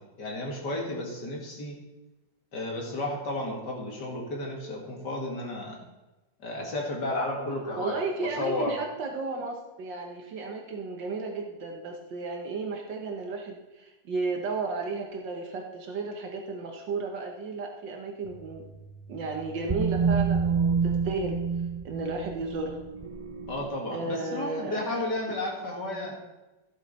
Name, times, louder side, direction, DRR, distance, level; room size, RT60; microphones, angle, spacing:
voice 1, 0.2-1.8 2.5-5.8 6.4-8.8 23.5-26.2, left 1 dB, 65° left, -1 dB, 2.7 m, -32 dB
voice 2, 7.8-18.6 19.1-21.4 21.8-22.8 23.9-25.0, right 3 dB, 80° right, 2 dB, 1.8 m, -34 dB
sound 1, 18.3-23.7, right 5 dB, 55° right, 0.3 m, -29 dB
15.5 x 7.3 x 4.2 m, 1.1 s
omnidirectional pair, 1.9 m